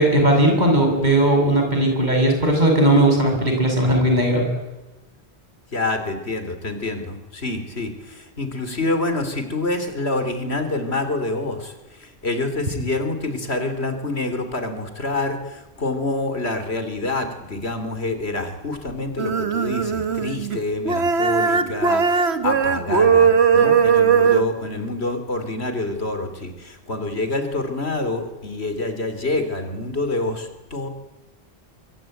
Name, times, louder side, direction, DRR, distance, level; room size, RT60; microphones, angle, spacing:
voice 1, 0.0-4.4, right 1 dB, 45° right, 2 dB, 7.3 m, -17 dB
voice 2, 5.7-30.9, left 2 dB, 80° left, 8 dB, 3.7 m, -27 dB
sound 1, 19.2-20.6 20.9-24.4, right 6 dB, 90° right, 1.7 m, -18 dB
25.0 x 23.0 x 9.2 m, 1.1 s
omnidirectional pair, 1.1 m